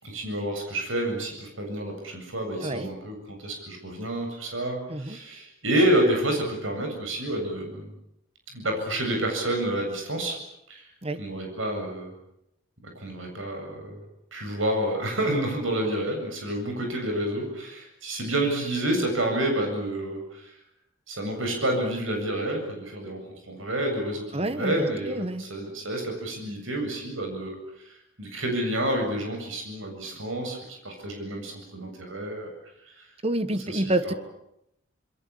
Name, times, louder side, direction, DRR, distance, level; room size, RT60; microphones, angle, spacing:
voice 1, 0.0-7.9 8.5-10.4 10.7-10.8 11.2-12.1 13.0-14.0 14.3-20.5 21.1-27.6 28.2-32.5 33.7-34.2, right 1 dB, 85° right, 3 dB, 7.8 m, -29 dB
voice 2, 24.3-25.4 33.2-34.1, right 1 dB, 30° right, 12 dB, 1.5 m, -28 dB
27.0 x 22.0 x 8.7 m, 0.80 s
head